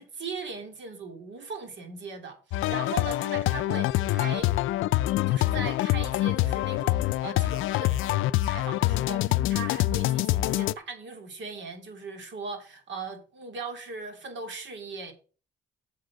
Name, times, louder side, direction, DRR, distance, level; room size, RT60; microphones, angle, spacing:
voice 1, 0.0-4.6 5.3-15.1, right 4 dB, 65° right, 3.0 m, -39 dB
sound 1, 2.5-10.7, left 16 dB, 85° left, 0.4 m, -25 dB
8.0 x 6.5 x 6.2 m
cardioid pair, 90°, 20 cm